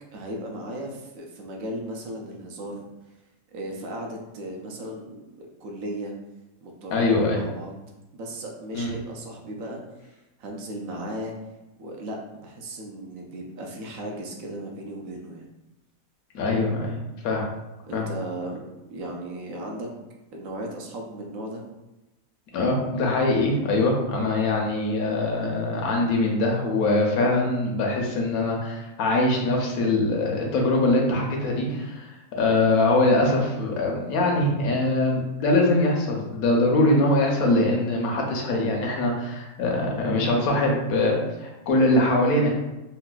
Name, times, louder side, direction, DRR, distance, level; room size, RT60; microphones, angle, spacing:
voice 1, 0.1-2.8 3.5-6.1 6.6-7.7 8.1-9.8 10.4-11.3 11.8-15.5 17.9-19.9 20.3-21.6, right 1 dB, 70° right, 0 dB, 0.9 m, -36 dB
voice 2, 6.9-7.4 8.7-8.9 16.3-17.0 17.2-17.5 17.9-18.1 22.5-42.5, left 2 dB, 75° left, 0 dB, 1.1 m, -23 dB
4.0 x 2.2 x 2.3 m, 1.0 s
omnidirectional pair, 1.6 m